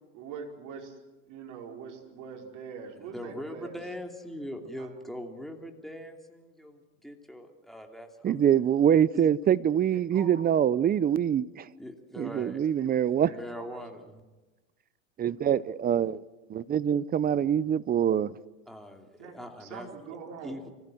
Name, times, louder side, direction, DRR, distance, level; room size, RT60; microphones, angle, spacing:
voice 1, 0.1-1.0 1.3-3.8 4.8-4.9 9.9-10.6 12.8-14.0 19.2-20.6, right 6 dB, 55° right, 5.0 m, -44 dB
voice 2, 3.0-8.4 9.1-9.3 11.7-12.6 13.2-14.2 18.7-19.9 20.4-20.6, equal, ahead, 2.9 m, -41 dB
voice 3, 8.2-11.6 12.2-13.3 15.2-16.2 16.5-18.3, right 9 dB, 25° right, 0.6 m, -24 dB
25.0 x 15.5 x 7.9 m
supercardioid pair, 110°, 37 cm